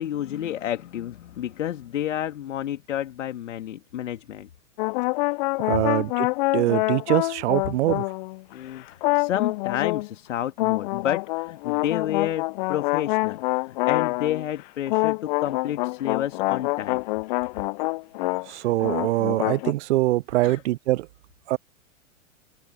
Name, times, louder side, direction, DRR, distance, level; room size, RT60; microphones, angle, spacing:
voice 1, 0.0-4.5 8.5-17.1 20.4-20.6, left 11 dB, 70° left, 2.4 m, -30 dB
sound 1, 4.8-8.5 9.0-10.1 10.6-14.5 14.9-18.5 18.7-19.7, left 25 dB, 40° left, 0.5 m, -26 dB
voice 2, 5.7-6.3 6.5-8.0 18.5-21.1 21.5-21.6, right 17 dB, 60° right, 0.5 m, -23 dB
hypercardioid pair, 105°, 39 cm